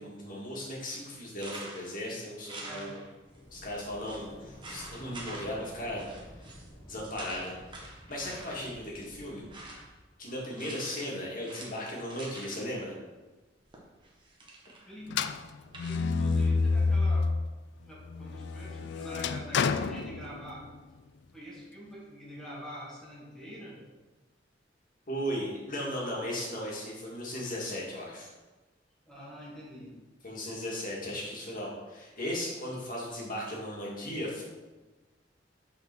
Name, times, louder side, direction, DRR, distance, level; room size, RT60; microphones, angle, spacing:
voice 1, 0.0-3.0 3.5-6.1 6.9-9.5 10.2-13.0 25.1-28.3 30.2-34.4, equal, 50° left, -4 dB, 2.0 m, -36 dB
sound 1, 1.3-2.0 2.4-3.4 3.6-3.7 4.1-4.3 4.6-5.7 6.0-6.7 7.0-8.7 9.3-10.0 10.6-11.1 11.4-12.7 13.7-14.9 15.3-16.1, right 2 dB, 25° right, 1.2 m, -46 dB
voice 2, 2.6-3.0 8.2-8.3 14.8-15.1 15.8-17.3 17.9-20.7 21.3-23.8 29.1-29.9, equal, 5° left, -6 dB, 1.6 m, -45 dB
sound 2, 3.1-10.1, equal, 20° left, 1.1 m, -52 dB
sound 3, 15.1-17.5 17.9-20.8, left 4 dB, 65° left, 0.4 m, -29 dB
5.7 x 4.2 x 6.0 m, 1.2 s
head